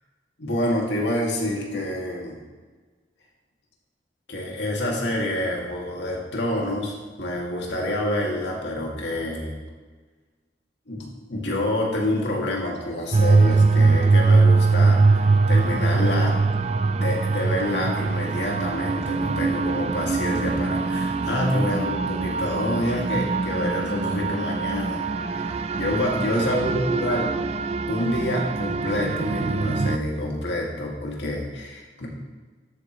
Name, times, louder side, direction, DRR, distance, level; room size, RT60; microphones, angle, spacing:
voice 1, 0.4-2.4 4.3-9.6 10.9-16.4 17.0-27.3 27.9-32.1, left 1 dB, 85° left, -1 dB, 2.1 m, -27 dB
sound 1, 13.1-30.0, right 3 dB, 35° right, 0.3 m, -22 dB
13.0 x 7.8 x 3.1 m, 1.4 s
head